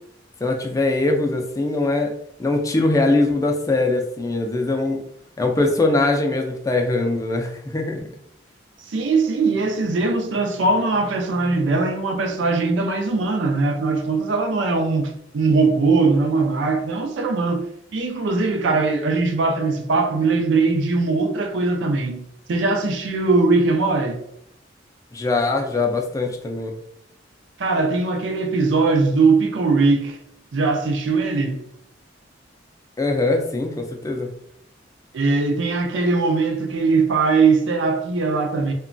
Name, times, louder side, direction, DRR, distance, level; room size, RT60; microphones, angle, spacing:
voice 1, 0.4-2.1 2.4-5.0 5.4-8.0 25.1-26.7 33.0-34.3, left 2 dB, 20° left, 0.3 m, -22 dB
voice 2, 8.9-17.7 17.9-24.2 27.6-30.2 30.5-31.6 35.1-38.7, right 3 dB, 75° right, 0.4 m, -20 dB
2.8 x 2.2 x 2.5 m
head